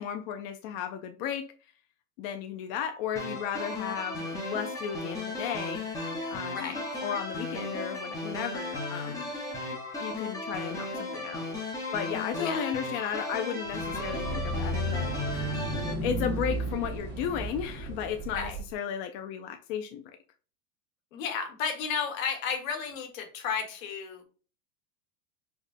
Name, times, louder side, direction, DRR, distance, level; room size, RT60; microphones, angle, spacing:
voice 1, 0.0-1.5 2.2-5.8 6.3-9.3 10.0-11.5 11.9-15.1 16.0-20.0, left 8 dB, 45° left, 0.4 m, -34 dB
sound 1, 3.2-15.9, left 2 dB, 10° left, 0.9 m, -35 dB
voice 2, 6.5-6.8 12.4-12.7 18.3-18.6 21.1-24.2, left 6 dB, 70° left, 1.3 m, -33 dB
sound 2, 13.7-18.6, equal, 25° right, 1.5 m, -33 dB
5.1 x 2.3 x 2.5 m
hypercardioid pair, 120°, 43 cm